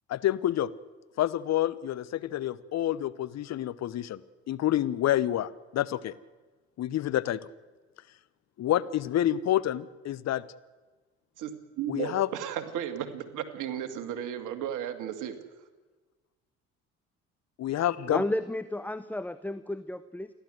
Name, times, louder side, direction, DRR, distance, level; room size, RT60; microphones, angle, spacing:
voice 1, 0.1-0.7 1.2-4.2 4.5-6.1 6.8-7.4 8.6-10.4 11.9-12.3 17.6-18.2, left 12 dB, 50° left, 16 dB, 1.0 m, -28 dB
voice 2, 11.4-15.3, right 9 dB, 60° right, 9 dB, 2.4 m, -34 dB
voice 3, 18.1-20.3, left 1 dB, 5° left, 13 dB, 0.8 m, -32 dB
29.5 x 12.0 x 7.9 m, 1.3 s
hypercardioid pair, 55°, 34 cm